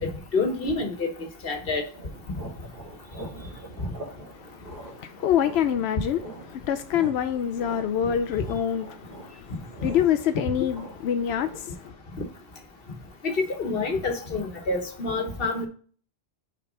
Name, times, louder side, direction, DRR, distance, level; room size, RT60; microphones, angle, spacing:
voice 1, 0.0-1.1 1.4-1.9 13.2-15.7, left 3 dB, 65° left, 1.4 m, -27 dB
sound 1, 1.9-11.6, right 2 dB, 65° right, 3.2 m, -44 dB
voice 2, 4.3-6.2 6.5-11.9, left 9 dB, 90° left, 0.8 m, -26 dB
6.0 x 4.6 x 3.8 m
omnidirectional pair, 1.1 m